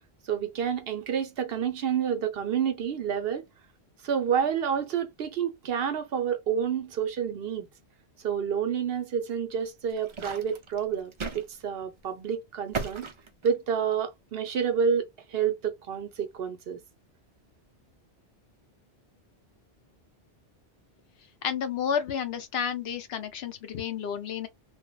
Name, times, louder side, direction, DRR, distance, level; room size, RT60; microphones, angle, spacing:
voice 1, 0.3-3.4 4.0-7.7 8.2-13.0 13.4-16.8, right 7 dB, 65° right, 0.8 m, -29 dB
sound 1, 9.6-11.5 11.8-12.0 12.7-14.0, right 5 dB, 45° right, 0.4 m, -36 dB
voice 2, 21.4-24.5, left 7 dB, 70° left, 0.9 m, -31 dB
3.3 x 2.0 x 2.3 m
omnidirectional pair, 1.1 m